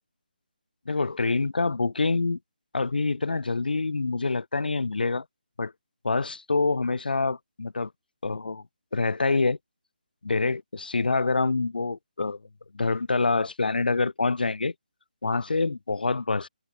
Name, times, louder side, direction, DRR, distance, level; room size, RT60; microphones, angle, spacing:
voice 1, 0.8-2.4 2.7-5.2 5.6-5.7 6.0-7.9 8.2-8.6 8.9-9.6 10.2-12.4 12.7-14.7 15.2-16.5, left 3 dB, 80° left, 4.6 m, -26 dB
hypercardioid pair, 170°, 5 cm